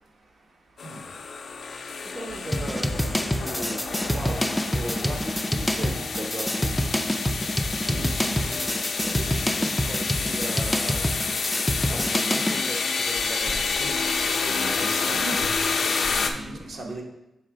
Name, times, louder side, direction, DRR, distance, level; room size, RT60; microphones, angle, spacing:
sound 1, 0.8-16.3, left 4 dB, 60° left, 0.5 m, -29 dB
voice 1, 1.7-6.9 9.0-11.1 11.9-14.1 16.2-16.6, right 1 dB, 30° right, 0 dB, 0.7 m, -38 dB
sound 2, 2.3-3.2 3.8-5.2 5.5-6.6 7.3-9.1, right 2 dB, 90° right, 2.2 m, -53 dB
sound 3, 2.5-12.6, equal, 5° left, 0.4 m, -27 dB
voice 2, 7.8-8.3 14.4-15.5 15.8-17.0, right 2 dB, 65° right, 1 dB, 1.1 m, -37 dB
6.3 x 3.4 x 5.0 m, 0.91 s
wide cardioid pair, 130°, 0 cm